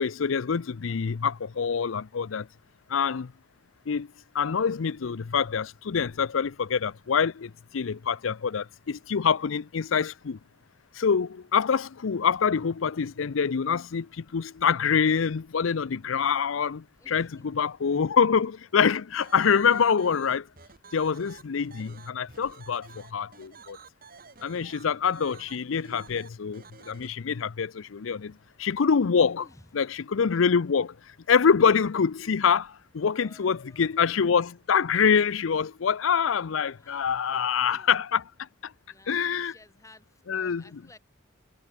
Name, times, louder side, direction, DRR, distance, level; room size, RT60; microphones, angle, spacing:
voice 1, 0.0-2.5 2.9-3.3 3.9-4.1 4.3-10.4 10.9-20.5 20.9-23.8 24.4-29.4 29.7-31.0 31.3-38.2 38.6-38.7 39.1-39.5 40.3-40.6, left 6 dB, 85° left, 0.5 m, -25 dB
voice 2, 17.0-18.0 28.0-28.3 29.4-29.7 33.2-33.8 36.8-37.9 38.9-41.0, left 2 dB, 15° left, 7.4 m, -55 dB
sound 1, 19.2-27.1, right 5 dB, 45° right, 4.3 m, -50 dB
head